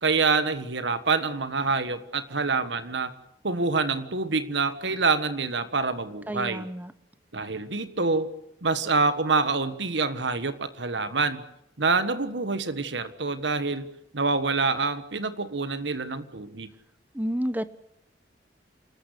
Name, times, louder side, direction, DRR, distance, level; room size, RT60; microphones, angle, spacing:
voice 1, 0.0-3.1 3.4-6.7 7.3-8.3 8.6-11.4 11.8-13.9 14.1-16.7, right 4 dB, 85° right, 12 dB, 1.5 m, -26 dB
voice 2, 6.3-6.9 17.1-17.6, equal, 10° right, 14 dB, 0.8 m, -30 dB
28.0 x 13.0 x 8.3 m, 0.81 s
head